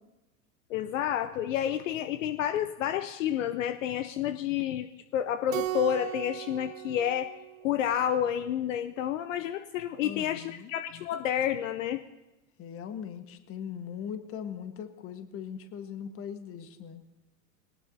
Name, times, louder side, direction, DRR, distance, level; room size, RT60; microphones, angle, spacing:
voice 1, 0.7-4.9 5.1-7.3 7.6-12.0, left 10 dB, 65° left, 11 dB, 0.7 m, -30 dB
Keyboard (musical), 5.5-8.1, right 13 dB, 65° right, 1.0 m, -37 dB
voice 2, 10.0-10.7 12.6-17.0, left 8 dB, 30° left, 9 dB, 1.4 m, -40 dB
21.0 x 18.5 x 2.8 m, 1.0 s
hypercardioid pair, 95°, 42 cm